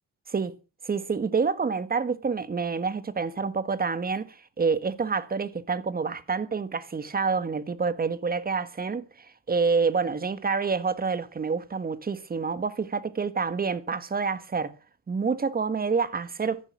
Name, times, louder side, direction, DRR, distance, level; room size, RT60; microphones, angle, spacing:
voice 1, 0.8-9.1 9.5-14.7 15.1-16.6, right 5 dB, 30° right, 1.6 m, -27 dB
13.5 x 11.5 x 6.1 m
cardioid pair, 90°, 30 cm